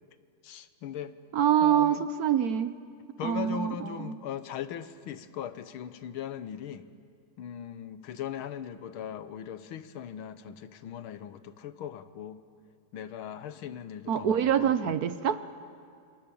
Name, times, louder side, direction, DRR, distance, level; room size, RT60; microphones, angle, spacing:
voice 1, 0.4-1.1 1.6-2.1 3.2-6.9 7.4-12.4 12.9-15.0, left 9 dB, 80° left, 12 dB, 1.8 m, -39 dB
voice 2, 1.3-2.8 3.2-4.2 14.1-15.4, right 9 dB, 60° right, 13 dB, 1.0 m, -25 dB
27.5 x 26.5 x 7.0 m, 2.3 s
omnidirectional pair, 2.3 m